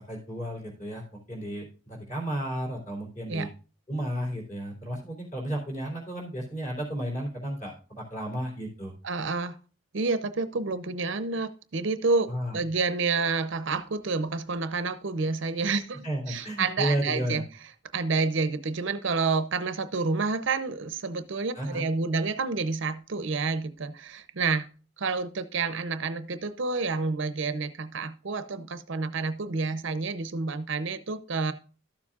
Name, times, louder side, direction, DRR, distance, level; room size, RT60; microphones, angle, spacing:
voice 1, 0.1-3.5 3.9-8.9 12.3-12.6 16.0-17.4 21.5-21.8, equal, 35° left, 0 dB, 3.4 m, -33 dB
voice 2, 9.0-9.6 9.9-12.3 12.5-17.4 17.9-24.7 25.0-31.5, right 4 dB, 60° right, 12 dB, 0.6 m, -29 dB
12.5 x 7.1 x 2.4 m, 0.36 s
head